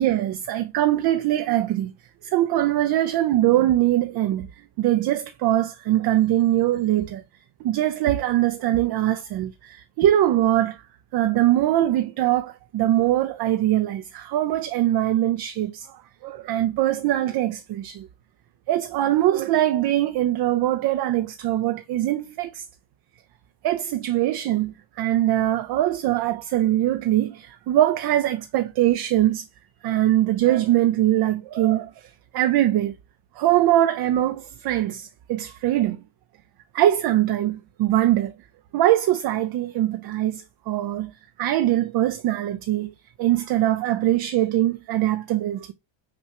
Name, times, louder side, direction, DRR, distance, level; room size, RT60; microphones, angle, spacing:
voice 1, 0.0-1.9 2.2-4.5 4.8-7.2 7.6-10.8 11.1-18.1 18.7-22.7 23.6-29.5 29.8-32.9 33.4-36.0 36.7-38.3 38.7-41.1 41.4-45.7, right 13 dB, 55° right, 0.5 m, -22 dB
5.9 x 2.2 x 2.8 m
cardioid pair, 105°, 47 cm